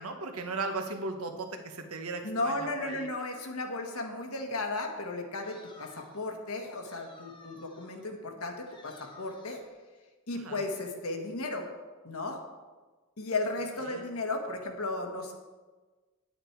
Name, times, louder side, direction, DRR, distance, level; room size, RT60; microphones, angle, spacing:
voice 1, 0.0-3.1 10.3-10.6 13.8-14.1, right 3 dB, 75° right, 5 dB, 1.2 m, -37 dB
voice 2, 2.2-9.6 10.3-11.7 12.0-12.4 13.2-15.3, left 2 dB, 75° left, 3 dB, 1.5 m, -35 dB
sound 1, 5.4-6.3 6.8-8.1 8.7-9.7, left 2 dB, 20° left, 1.3 m, -55 dB
9.6 x 8.8 x 4.6 m, 1.3 s
head